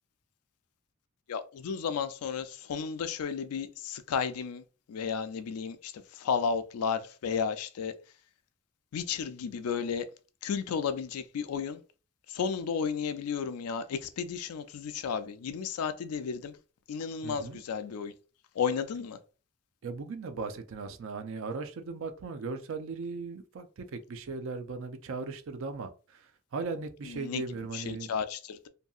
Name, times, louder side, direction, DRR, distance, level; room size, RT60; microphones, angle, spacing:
voice 1, 1.3-4.6 4.9-7.9 8.9-10.1 10.4-11.8 12.3-16.6 16.9-18.1 18.6-19.2 27.1-27.4 27.7-28.7, left 6 dB, 90° left, 0.4 m, -33 dB
voice 2, 17.2-17.6 19.8-28.1, right 4 dB, 60° right, 0.4 m, -38 dB
2.7 x 2.6 x 2.3 m
head